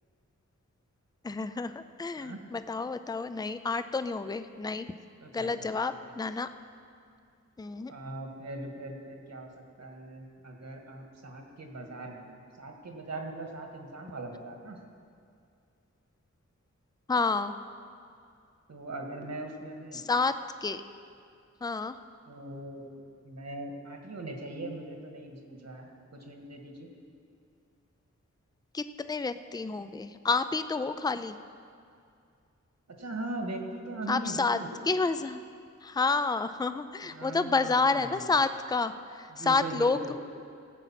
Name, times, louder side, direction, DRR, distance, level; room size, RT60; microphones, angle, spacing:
voice 1, 1.2-4.9 5.3-6.5 7.6-7.9 17.1-17.5 19.9-20.3 20.6-20.8 21.6-22.0 28.7-31.4 34.1-34.6 34.9-35.4 35.8-40.1, left 4 dB, 15° left, 11 dB, 0.4 m, -29 dB
voice 2, 5.2-5.7 6.1-6.2 7.9-9.5 9.8-14.8 18.7-20.0 22.3-22.9 23.2-26.9 33.0-34.7 37.1-38.3 39.3-40.1, right 2 dB, 65° right, 2 dB, 1.8 m, -40 dB
17.0 x 8.0 x 5.9 m, 2.4 s
wide cardioid pair, 100°, 29 cm